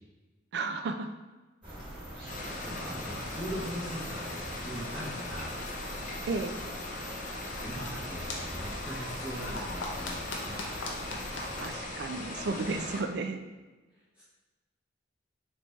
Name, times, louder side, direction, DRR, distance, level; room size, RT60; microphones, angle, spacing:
voice 1, 0.5-1.1 6.3-6.5 11.6-13.4, right 3 dB, 60° right, 8 dB, 0.3 m, -33 dB
sound 1, 1.6-11.7, right 1 dB, 25° right, 1.3 m, -43 dB
sound 2, 2.3-13.0, left 2 dB, 40° left, 0.5 m, -39 dB
voice 2, 2.6-5.6 7.6-10.6 14.2-14.3, equal, 5° right, -10 dB, 0.7 m, -40 dB
sound 3, 7.6-12.8, left 2 dB, 85° left, 0.7 m, -43 dB
4.1 x 3.3 x 3.1 m, 1.2 s
head